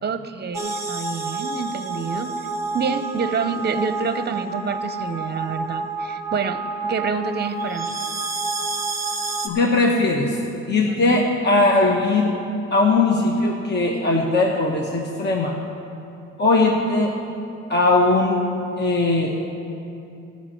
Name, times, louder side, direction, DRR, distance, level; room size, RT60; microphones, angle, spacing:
voice 1, 0.0-2.4 2.7-8.0 10.9-11.2, right 5 dB, 35° right, 10 dB, 0.7 m, -27 dB
sound 1, 0.5-9.5, right 3 dB, 10° right, 1.1 m, -29 dB
voice 2, 9.4-10.4 10.7-12.3 12.7-15.6 16.4-17.1 17.7-18.4 18.8-19.4, left 2 dB, 35° left, -1 dB, 1.2 m, -19 dB
13.5 x 5.7 x 8.5 m, 2.7 s
cardioid pair, 90°, 30 cm